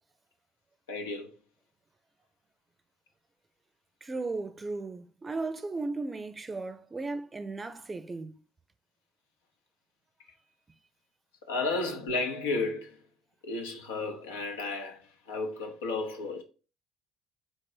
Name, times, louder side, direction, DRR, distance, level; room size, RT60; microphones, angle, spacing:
voice 1, 0.9-1.3 11.5-13.0 13.4-15.0 15.3-16.4, left 3 dB, 85° left, 0.7 m, -32 dB
voice 2, 4.0-8.3, right 3 dB, 25° right, 0.5 m, -36 dB
4.0 x 2.6 x 4.7 m
hypercardioid pair, 55°, 0 cm